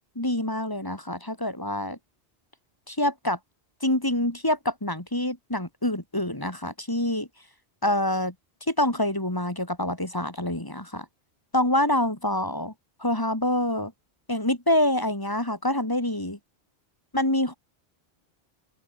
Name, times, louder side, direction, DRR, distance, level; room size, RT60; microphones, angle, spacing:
voice 1, 0.2-2.0 2.9-3.4 3.8-7.3 7.8-8.3 8.7-11.1 11.5-12.7 13.0-13.9 14.3-16.4 17.1-17.5, left 1 dB, 20° left, 3.1 m, -26 dB
open air
omnidirectional pair, 1.1 m